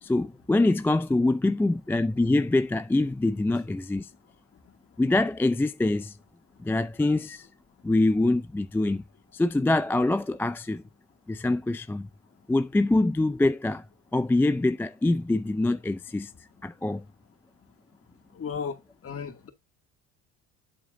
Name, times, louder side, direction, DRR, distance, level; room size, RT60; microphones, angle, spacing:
voice 1, 0.0-4.1 5.0-6.2 6.6-7.5 7.8-9.0 9.3-10.8 11.3-12.1 12.5-13.8 14.1-16.3 16.6-17.0, left 2 dB, 5° left, 0.4 m, -24 dB
voice 2, 18.3-19.5, left 6 dB, 35° left, 2.2 m, -35 dB
8.0 x 7.5 x 2.6 m
supercardioid pair, 90°, 39 cm